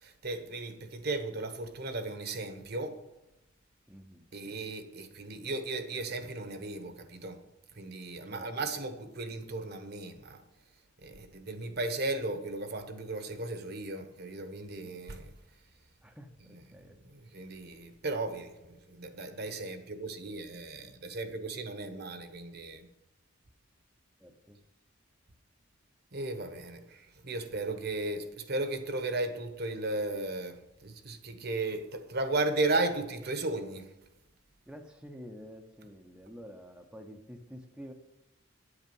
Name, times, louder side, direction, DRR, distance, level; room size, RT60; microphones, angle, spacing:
voice 1, 0.0-3.0 4.3-7.4 7.7-10.4 11.0-15.3 16.5-16.6 17.0-22.9 26.1-33.9, right 2 dB, 55° right, 1.1 m, -35 dB
voice 2, 3.9-4.6 8.3-8.6 16.0-17.0 24.2-24.6 34.7-37.9, equal, 5° right, 0.8 m, -49 dB
10.0 x 8.3 x 5.4 m
head